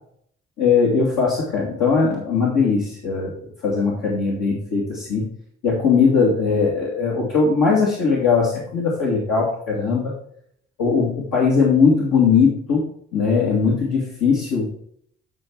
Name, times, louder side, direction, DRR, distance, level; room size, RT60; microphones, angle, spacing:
voice 1, 0.6-3.3 3.6-5.3 5.6-10.1 10.8-12.8 13.1-14.6, left 5 dB, 60° left, -5 dB, 2.7 m, -19 dB
11.0 x 4.5 x 4.7 m, 0.65 s
figure-of-eight pair, 40°, 38 cm